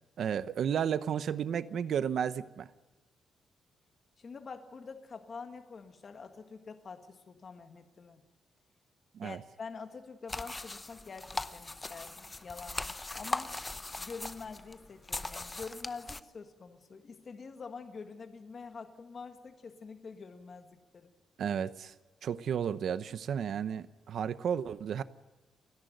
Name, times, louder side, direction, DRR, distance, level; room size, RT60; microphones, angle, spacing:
voice 1, 0.2-2.7 9.1-9.4 21.4-21.9 22.2-25.0, right 8 dB, 65° right, 0.8 m, -33 dB
voice 2, 4.2-8.2 9.2-13.6 14.0-21.1, left 5 dB, 40° left, 1.7 m, -46 dB
sound 1, 10.3-16.2, left 2 dB, 20° left, 0.8 m, -40 dB
30.0 x 10.5 x 9.2 m
cardioid pair, 110°, 0 cm